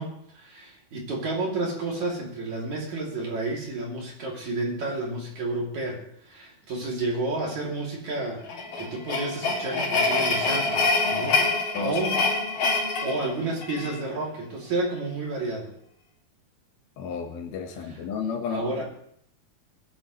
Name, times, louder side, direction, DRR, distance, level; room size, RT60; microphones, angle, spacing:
voice 1, 0.0-12.2 13.0-15.7 17.8-18.0 18.5-18.8, right 2 dB, 50° right, -2 dB, 4.1 m, -31 dB
sound 1, 8.5-14.0, left 3 dB, 60° left, 4.4 m, -25 dB
voice 2, 17.0-18.8, left 5 dB, 75° left, 4 dB, 3.3 m, -32 dB
21.5 x 11.0 x 3.2 m, 0.67 s
omnidirectional pair, 4.4 m